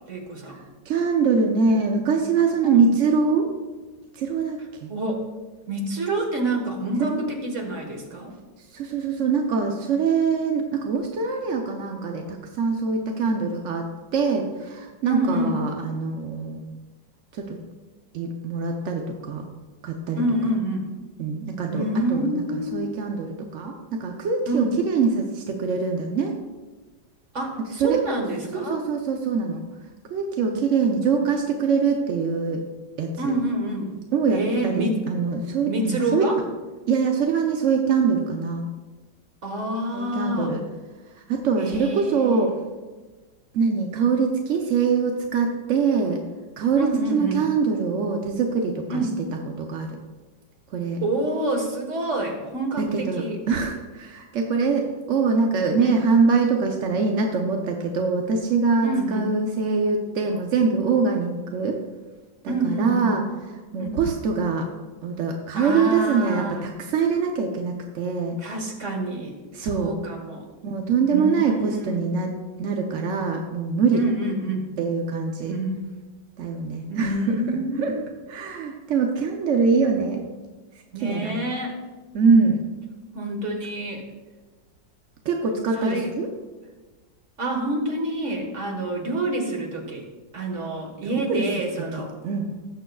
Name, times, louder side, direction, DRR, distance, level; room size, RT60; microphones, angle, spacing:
voice 1, 0.1-0.6 2.6-2.9 4.9-5.3 5.7-8.3 15.0-15.6 20.2-20.9 21.7-22.9 24.5-24.7 27.3-28.8 33.2-33.9 34.3-35.0 35.6-36.4 39.4-40.6 41.6-42.4 46.8-47.4 48.9-49.2 51.0-53.4 55.8-55.9 58.8-59.3 62.5-63.1 63.8-63.9 65.5-66.6 68.4-69.4 69.7-70.4 71.1-72.0 73.9-74.7 75.5-75.9 76.9-78.0 80.9-81.7 83.1-84.0 85.8-86.1 87.4-90.1 90.3-92.1, right 1 dB, 40° right, 3 dB, 1.6 m, -27 dB
voice 2, 0.9-3.5 4.1-4.9 7.1-7.2 8.7-13.9 14.1-16.7 17.3-17.6 18.1-19.5 19.8-20.2 21.2-21.8 22.1-26.3 27.8-28.0 28.5-29.6 30.1-32.6 33.0-33.3 34.1-36.3 36.9-38.6 39.9-40.6 41.3-42.5 43.5-46.2 46.6-49.0 49.6-50.0 50.7-51.0 52.8-61.8 62.4-63.2 63.7-64.7 65.0-68.4 69.5-69.9 70.6-72.3 72.6-74.0 74.8-75.5 76.4-77.4 77.8-77.9 78.3-80.2 81.0-81.4 82.1-82.6 85.2-86.3 91.0-91.5 92.0-92.5, right 5 dB, 60° right, 2 dB, 0.8 m, -23 dB
18.0 x 6.8 x 2.3 m, 1.3 s
omnidirectional pair, 2.0 m